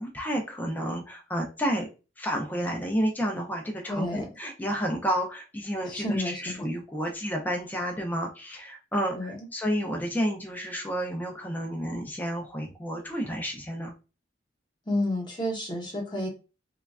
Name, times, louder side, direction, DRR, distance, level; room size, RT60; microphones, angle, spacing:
voice 1, 0.0-1.9 2.2-13.9, equal, 10° left, 1 dB, 0.4 m, -30 dB
voice 2, 3.9-4.3 5.9-6.6 9.1-9.4 14.9-16.3, left 1 dB, 25° left, 0 dB, 0.8 m, -30 dB
3.1 x 2.2 x 2.3 m, 0.31 s
head